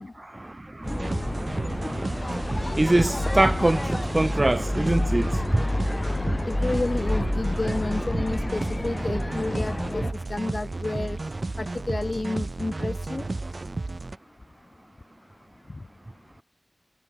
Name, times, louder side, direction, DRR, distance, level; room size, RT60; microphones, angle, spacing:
voice 1, 0.2-5.7, right 1 dB, 40° right, 0.5 m, -25 dB
sound 1, 0.8-10.1, left 1 dB, 35° left, 2.9 m, -29 dB
sound 2, 0.8-14.2, right 2 dB, 65° right, 4.2 m, -32 dB
voice 2, 6.4-11.2 11.6-13.3, left 2 dB, 60° left, 1.5 m, -30 dB
wide cardioid pair, 40°, 0 cm